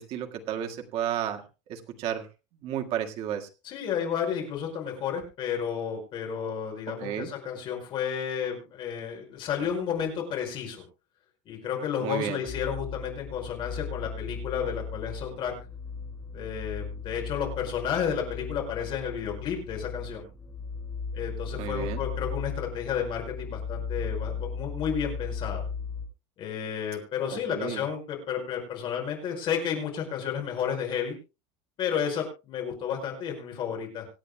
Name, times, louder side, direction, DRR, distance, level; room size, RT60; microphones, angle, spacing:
voice 1, 0.0-1.4 1.7-2.3 2.6-3.5 7.0-7.3 12.0-12.4 21.6-22.0 27.3-27.8, right 10 dB, 40° right, 4 dB, 1.8 m, -32 dB
voice 2, 3.6-10.8 11.5-15.5 16.3-20.2 21.1-25.6 26.4-31.2 31.8-34.1, left 8 dB, 35° left, 1 dB, 5.2 m, -32 dB
sound 1, 12.5-26.1, left 5 dB, 10° left, 5.4 m, -36 dB
26.0 x 9.1 x 2.2 m, 0.30 s
cardioid pair, 170°, 15 cm